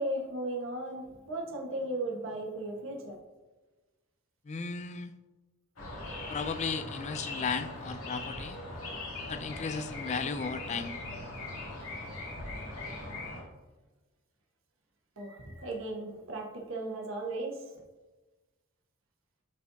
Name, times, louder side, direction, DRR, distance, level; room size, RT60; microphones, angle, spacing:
voice 1, 0.0-3.1 15.2-17.8, right 1 dB, 65° right, -1 dB, 1.3 m, -36 dB
voice 2, 4.5-5.1 6.3-8.6 9.3-11.0, left 5 dB, 35° left, 11 dB, 0.4 m, -35 dB
sound 1, 5.8-13.4, left 2 dB, 75° left, 2.5 m, -40 dB
12.0 x 4.3 x 2.7 m, 1.2 s
head